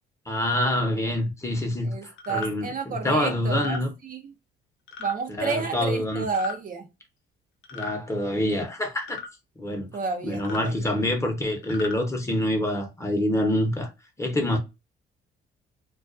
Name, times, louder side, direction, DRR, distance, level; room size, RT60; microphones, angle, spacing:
voice 1, 0.3-3.9 5.4-6.3 7.7-9.2 9.6-9.9 10.2-13.9 14.2-14.6, left 1 dB, 15° left, 0.8 m, -26 dB
voice 2, 1.8-4.3 5.0-6.9 9.9-10.9, right 4 dB, 45° right, 0.5 m, -31 dB
sound 1, 2.2-2.5 3.4-3.8 4.9-5.2 6.2-6.6 7.6-8.0 9.0-9.3 10.3-10.7 11.5-12.0, left 5 dB, 75° left, 0.6 m, -37 dB
2.3 x 2.2 x 2.4 m
cardioid pair, 90°, 20 cm